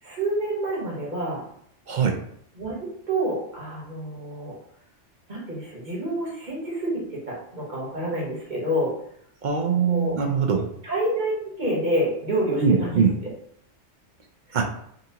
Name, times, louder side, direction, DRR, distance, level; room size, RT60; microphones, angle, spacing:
voice 1, 0.0-1.5 2.5-4.5 5.3-8.9 9.9-10.2 10.8-11.3 11.6-12.9 13.2-13.3 14.5-14.6, right 1 dB, 40° right, -5 dB, 1.2 m, -28 dB
voice 2, 1.9-2.2 9.4-10.7 12.6-13.1 14.5-14.6, right 6 dB, 60° right, 2 dB, 0.5 m, -22 dB
3.7 x 2.6 x 2.8 m, 0.68 s
omnidirectional pair, 1.2 m